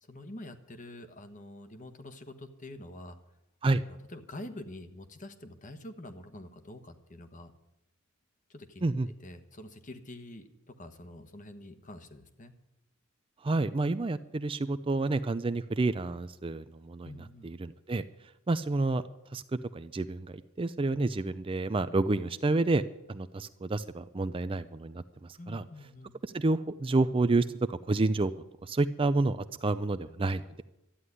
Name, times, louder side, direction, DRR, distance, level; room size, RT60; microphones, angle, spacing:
voice 1, 0.0-3.2 3.7-7.5 8.5-8.9 9.2-12.5 17.0-17.5 25.4-26.2, left 1 dB, 35° left, 8 dB, 1.2 m, -46 dB
voice 2, 13.4-17.1 17.4-18.0 18.5-19.0 19.3-19.4 19.7-22.8 23.1-25.6 26.2-28.3 28.6-30.6, right 2 dB, 25° right, 12 dB, 0.4 m, -29 dB
13.0 x 9.5 x 9.8 m, 0.91 s
head